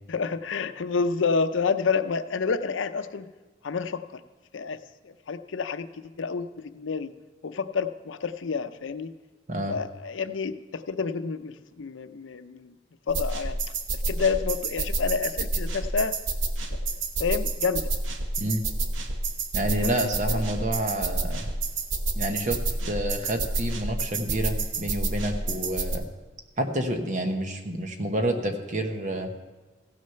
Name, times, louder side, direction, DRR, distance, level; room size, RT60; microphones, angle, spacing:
voice 1, 0.1-3.3 3.6-4.2 4.5-4.8 5.0-7.1 7.4-9.1 9.7-12.7 13.1-13.6 14.1-16.2 16.8-17.9 19.8-20.0 20.3-20.4, left 5 dB, 85° left, 11 dB, 0.5 m, -29 dB
sound 1, 13.1-26.0, right 2 dB, 90° right, 1.0 m, -29 dB
voice 2, 19.5-21.5 22.1-22.6 22.8-26.0 26.6-29.3, right 1 dB, 40° right, 5 dB, 1.1 m, -29 dB
15.5 x 6.4 x 5.7 m, 1.3 s
head